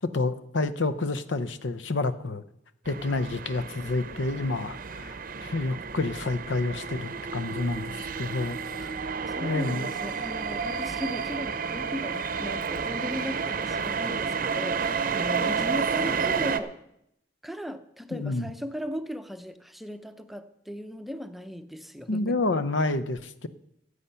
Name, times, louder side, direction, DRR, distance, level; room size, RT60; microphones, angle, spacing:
voice 1, 0.1-2.4 2.9-8.6 9.4-9.9 18.1-18.5 22.1-23.5, left 2 dB, 90° left, 12 dB, 0.7 m, -29 dB
sound 1, 2.9-16.6, right 5 dB, 50° right, 0.7 m, -31 dB
voice 2, 9.4-16.8 17.4-22.4, equal, ahead, 9 dB, 0.6 m, -37 dB
15.0 x 8.1 x 5.7 m, 0.80 s
head